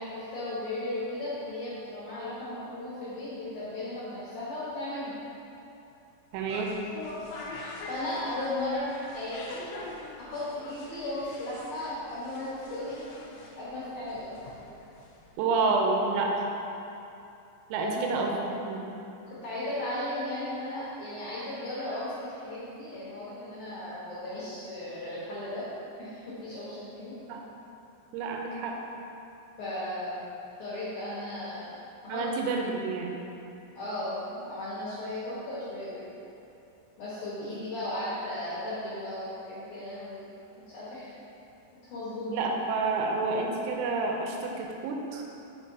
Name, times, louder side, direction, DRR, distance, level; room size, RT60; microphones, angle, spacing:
voice 1, 0.0-5.1 7.9-9.6 10.2-13.0 13.6-14.3 17.8-18.2 19.4-25.7 26.0-27.2 29.6-30.2 30.6-31.8 32.0-32.2 33.8-36.1 37.0-40.2 40.7-41.1 41.9-42.4, left 1 dB, 70° left, -11 dB, 2.3 m, -35 dB
sound 1, 6.3-15.4, left 2 dB, 85° left, 2.7 m, -44 dB
voice 2, 6.3-6.7 15.4-16.5 17.7-18.4 18.7-18.9 27.3-27.5 28.1-28.8 32.1-33.2 42.3-45.2, right 3 dB, 90° right, 1 dB, 3.4 m, -29 dB
7.4 x 5.3 x 2.8 m, 2.8 s
omnidirectional pair, 5.9 m